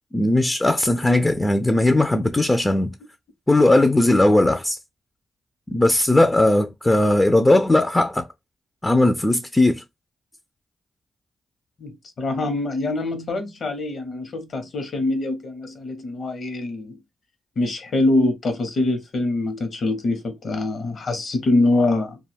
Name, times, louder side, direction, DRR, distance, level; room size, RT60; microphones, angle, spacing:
voice 1, 0.1-2.9 3.5-4.8 5.7-8.2 8.8-9.8, left 1 dB, 20° left, 0.4 m, -18 dB
voice 2, 11.8-17.0 17.6-22.2, left 2 dB, 65° left, 0.9 m, -24 dB
2.3 x 2.2 x 3.3 m
supercardioid pair, 55°, 0 cm